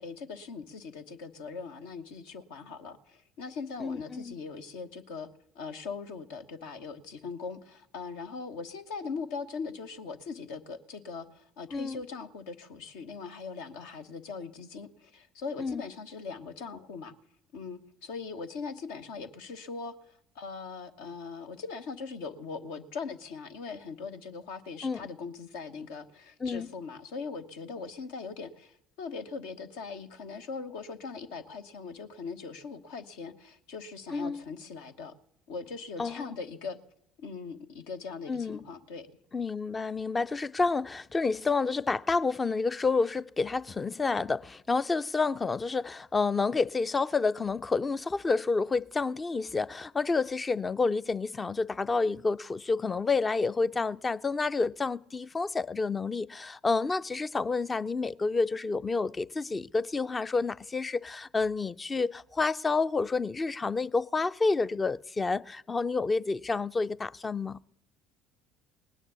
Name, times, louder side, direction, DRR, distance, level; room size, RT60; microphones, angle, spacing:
voice 1, 0.0-5.3 5.5-17.1 17.5-35.1 35.5-36.8 37.2-39.1, left 4 dB, 65° left, 1.1 m, -40 dB
voice 2, 3.8-4.3 11.7-12.0 15.6-15.8 24.8-25.0 26.4-26.7 34.1-34.4 36.0-36.3 38.3-38.6 39.3-67.6, left 4 dB, 25° left, 0.5 m, -29 dB
19.0 x 9.8 x 6.9 m
figure-of-eight pair, 55°, 0 cm